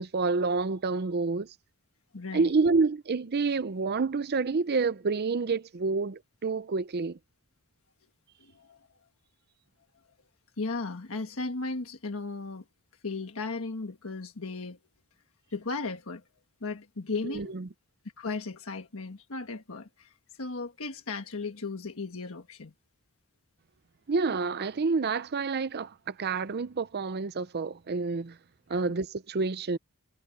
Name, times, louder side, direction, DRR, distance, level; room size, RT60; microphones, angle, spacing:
voice 1, 0.0-1.5 2.3-7.2 17.2-17.6 24.1-28.4 28.7-29.8, right 4 dB, 45° right, 0.6 m, -28 dB
voice 2, 2.1-2.5 8.5-8.8 10.6-12.6 13.0-14.8 15.5-16.2 16.6-17.6 18.2-22.7 28.7-28.9, left 3 dB, 65° left, 1.4 m, -36 dB
head